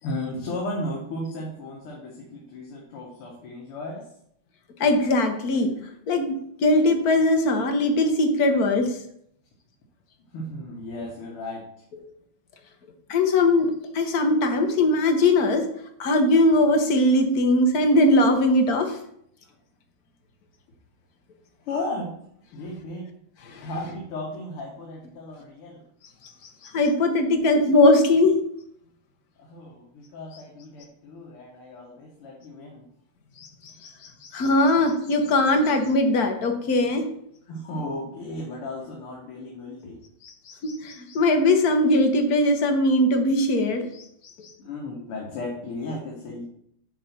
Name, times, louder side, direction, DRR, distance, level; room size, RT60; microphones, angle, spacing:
voice 1, 0.0-4.1 10.3-11.7 19.4-19.6 21.7-22.2 22.5-23.1 23.6-25.8 29.4-32.9 37.5-40.0 44.6-46.4, left 1 dB, 80° left, -2 dB, 2.2 m, -35 dB
voice 2, 4.8-5.7 6.1-6.3 6.6-9.0 13.1-15.7 16.0-19.0 23.5-23.7 26.6-28.4 33.4-33.9 34.3-37.0 40.2-43.8 44.4-44.5, left 2 dB, 50° left, 4 dB, 1.4 m, -20 dB
7.5 x 4.1 x 5.9 m, 0.71 s
omnidirectional pair, 2.4 m